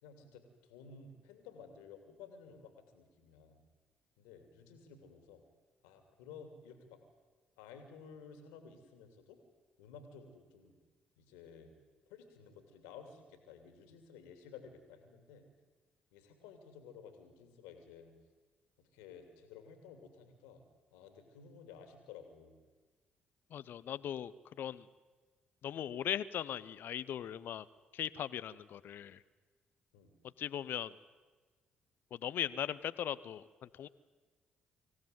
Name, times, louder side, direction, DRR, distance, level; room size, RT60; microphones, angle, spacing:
voice 1, 0.0-3.6 4.2-5.4 5.8-7.0 7.6-9.4 9.8-10.7 11.2-11.7 12.1-15.5 16.1-18.1 18.9-20.6 20.9-22.6 29.9-30.2, left 6 dB, 80° left, 7 dB, 2.9 m, -54 dB
voice 2, 23.5-24.3 24.6-24.9 25.6-27.7 27.9-29.2 30.4-30.9 32.1-33.9, left 10 dB, 60° left, 17 dB, 0.7 m, -39 dB
25.0 x 16.0 x 9.3 m, 1.4 s
hypercardioid pair, 45°, 4 cm